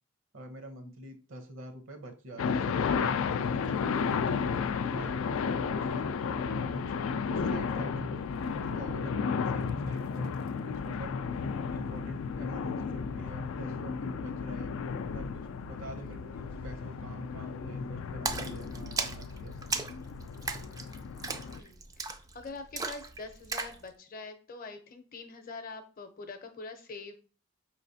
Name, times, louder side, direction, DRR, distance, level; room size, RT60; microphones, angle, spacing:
voice 1, 0.3-5.2 5.8-6.1 6.5-6.9 7.3-10.4 10.6-11.2 11.7-14.7 15.1-19.6 19.9-20.0, right 1 dB, 70° right, 6 dB, 0.8 m, -45 dB
sound 1, 2.4-21.6, left 5 dB, 90° left, 0.3 m, -33 dB
voice 2, 15.8-16.2 21.3-27.1, left 3 dB, 45° left, 8 dB, 0.6 m, -45 dB
Splash splatter, 18.3-23.8, right 4 dB, 20° right, 0.3 m, -37 dB
4.8 x 3.1 x 2.7 m, 0.37 s
head